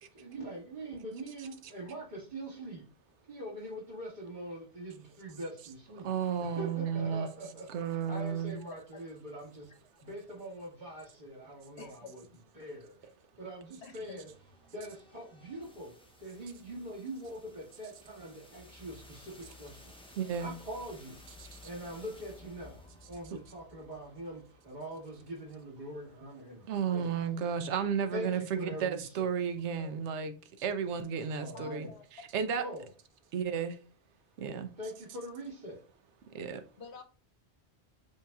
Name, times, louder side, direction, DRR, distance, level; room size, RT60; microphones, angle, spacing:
voice 1, 0.1-2.9 3.3-6.1 6.6-9.7 10.0-12.2 12.6-13.0 13.4-14.3 14.7-15.9 16.2-19.9 20.4-21.2 21.6-27.1 28.1-29.1 31.3-31.9 32.6-32.8 34.8-35.8, right 1 dB, 45° right, 2.1 m, -43 dB
voice 2, 1.4-1.7 6.0-7.3 7.7-8.6 20.1-20.5 21.4-21.6 23.3-23.4 26.7-32.6 33.3-33.8 34.4-34.7 36.3-36.6, right 7 dB, 85° right, 0.9 m, -33 dB
voice 3, 8.7-9.0 11.8-12.1 13.8-14.2 29.8-29.9 31.5-32.1 32.6-32.8 36.8-37.0, left 6 dB, 75° left, 1.0 m, -49 dB
sound 1, 13.9-25.7, left 2 dB, 10° left, 0.3 m, -56 dB
8.2 x 2.8 x 2.3 m
omnidirectional pair, 1.1 m